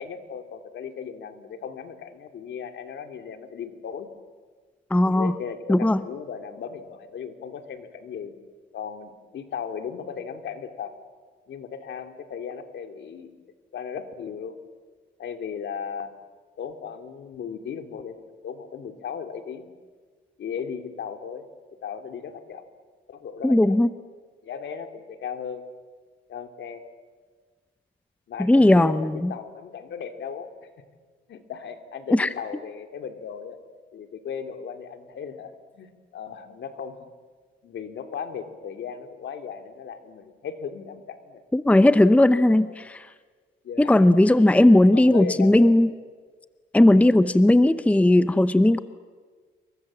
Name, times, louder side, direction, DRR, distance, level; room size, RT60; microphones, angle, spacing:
voice 1, 0.0-4.1 5.0-8.3 8.7-10.9 11.5-13.3 13.7-14.6 15.2-16.1 16.6-18.2 18.4-19.7 20.4-21.5 21.8-22.6 23.1-23.8 24.4-25.6 26.3-26.8 28.3-30.7 31.3-33.6 33.9-37.1 37.6-41.4 42.5-42.6 43.6-44.1 44.8-45.8, left 7 dB, 65° left, 7 dB, 2.7 m, -36 dB
voice 2, 4.9-5.3 5.7-6.0 23.4-23.9 28.4-29.3 32.1-32.3 41.5-43.1 43.8-45.9 46.7-48.8, left 1 dB, 5° left, 13 dB, 0.8 m, -17 dB
28.5 x 23.5 x 7.4 m, 1.5 s
cardioid pair, 90°, 20 cm